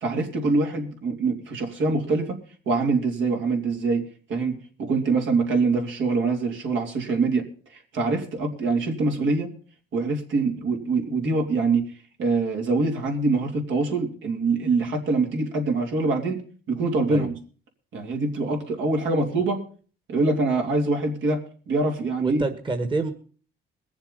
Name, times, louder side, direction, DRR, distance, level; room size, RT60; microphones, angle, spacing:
voice 1, 0.0-2.4 2.7-7.5 7.9-9.5 9.9-11.9 12.2-17.3 17.9-19.6 20.1-21.4 21.7-22.4, right 3 dB, 75° right, 2 dB, 3.1 m, -24 dB
voice 2, 22.2-23.1, right 3 dB, 25° right, 7 dB, 1.5 m, -27 dB
21.5 x 7.2 x 5.4 m, 0.41 s
cardioid pair, 90°, 20 cm